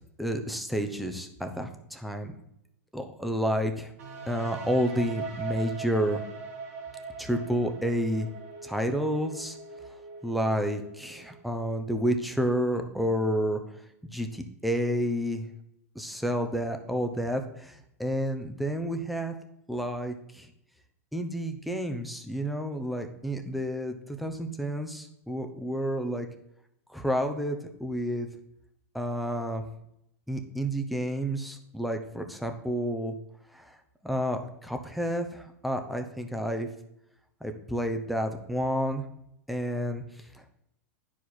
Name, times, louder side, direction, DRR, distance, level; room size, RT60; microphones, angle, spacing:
voice 1, 0.2-2.3 2.9-3.9 4.3-6.2 7.2-8.3 8.6-9.6 10.2-13.6 14.1-15.4 15.9-19.3 19.7-20.5 21.1-26.3 26.9-28.3 28.9-29.6 30.3-33.1 33.5-33.7 34.0-36.7 37.4-39.1 39.5-40.0 40.3-40.6, equal, ahead, 5 dB, 0.9 m, -30 dB
sound 1, 4.0-11.7, right 5 dB, 70° right, 2.0 m, -41 dB
10.0 x 4.9 x 4.1 m, 0.79 s
hypercardioid pair, 105°, 8 cm